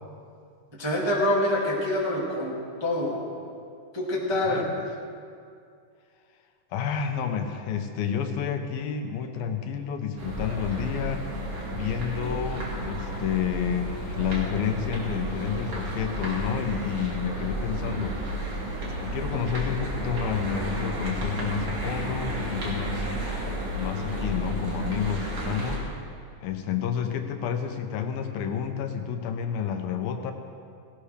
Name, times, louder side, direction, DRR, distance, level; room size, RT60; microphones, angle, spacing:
voice 1, 0.7-3.2 3.9-4.6, left 1 dB, 15° right, -5 dB, 0.9 m, -26 dB
voice 2, 4.3-4.7 6.7-11.3 11.7-18.2 19.0-23.1 23.8-25.9 26.4-30.3, left 8 dB, 85° left, 6 dB, 2.7 m, -30 dB
sound 1, 10.2-25.8, right 1 dB, 45° right, 3.1 m, -32 dB
17.0 x 17.0 x 3.3 m, 2.3 s
omnidirectional pair, 4.1 m